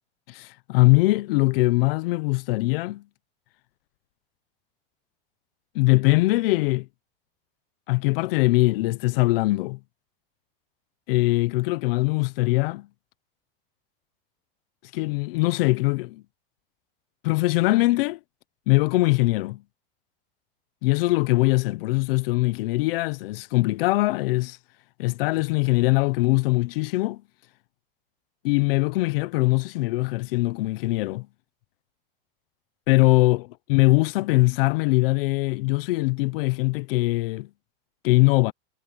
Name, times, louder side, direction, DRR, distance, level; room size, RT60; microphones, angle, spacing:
voice 1, 0.3-3.0 5.7-6.9 7.9-9.8 11.1-12.9 14.9-16.2 17.2-18.2 18.7-19.6 20.8-24.6 25.0-27.2 28.4-31.3 32.9-37.5 38.0-38.5, left 22 dB, 75° left, 0.9 m, -22 dB
supercardioid pair, 130°, 29 cm